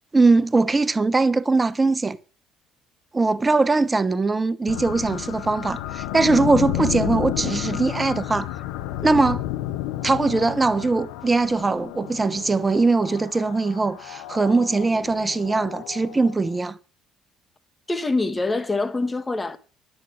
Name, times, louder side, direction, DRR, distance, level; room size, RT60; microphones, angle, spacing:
voice 1, 0.1-2.2 3.1-8.5 9.0-9.4 10.0-16.8, right 3 dB, 20° right, 1.0 m, -21 dB
sound 1, 4.7-16.6, left 14 dB, 85° left, 0.8 m, -31 dB
voice 2, 17.9-19.6, left 3 dB, 20° left, 1.7 m, -24 dB
11.0 x 8.9 x 6.3 m
supercardioid pair, 75°, 0 cm